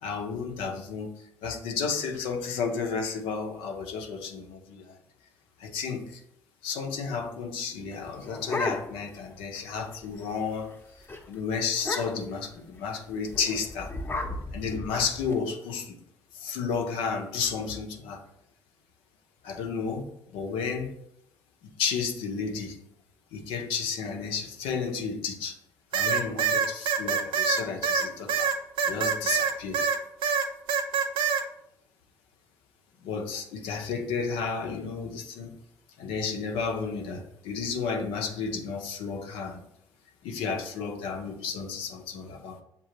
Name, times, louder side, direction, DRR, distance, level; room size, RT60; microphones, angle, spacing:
voice 1, 0.0-5.0 5.6-6.2 6.6-13.9 14.5-16.0 16.3-18.2 19.4-20.9 21.6-22.8 23.3-25.6 25.9-28.5 28.8-29.9 33.0-35.5 36.0-39.6 40.2-42.6, left 5 dB, 85° left, 4 dB, 0.6 m, -32 dB
sound 1, 7.9-9.2 9.6-9.7 9.9-10.2 10.6-10.8 11.1-11.2 11.8-12.4 13.3-15.3, left 2 dB, 25° left, 0.7 m, -34 dB
sound 2, 25.9-30.0 30.2-31.4, right 6 dB, 75° right, 0.5 m, -25 dB
6.6 x 2.4 x 2.9 m, 0.77 s
hypercardioid pair, 55°, 9 cm